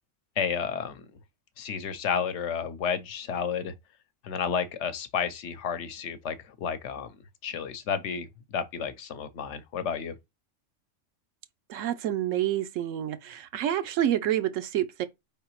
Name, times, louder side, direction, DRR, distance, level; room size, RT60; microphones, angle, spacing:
voice 1, 0.4-1.0 1.6-3.7 4.2-7.1 7.4-10.1, left 7 dB, 70° left, 0.9 m, -31 dB
voice 2, 11.7-15.1, right 11 dB, 90° right, 1.0 m, -28 dB
4.7 x 3.5 x 3.0 m
omnidirectional pair, 1.3 m